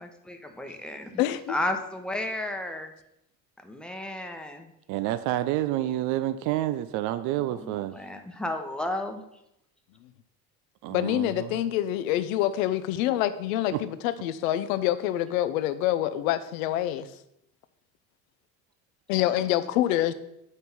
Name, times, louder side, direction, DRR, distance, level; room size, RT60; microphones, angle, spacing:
voice 1, 0.0-1.1 1.5-2.9 3.6-4.7 7.9-9.2, left 1 dB, ahead, 5 dB, 1.0 m, -33 dB
voice 2, 1.2-1.6 10.9-17.1 19.1-20.1, left 13 dB, 55° left, 13 dB, 0.8 m, -26 dB
voice 3, 4.9-8.0 10.8-11.6 13.7-13.8, right 14 dB, 40° right, 13 dB, 0.5 m, -29 dB
8.2 x 5.3 x 5.9 m, 0.82 s
figure-of-eight pair, 65°, 48 cm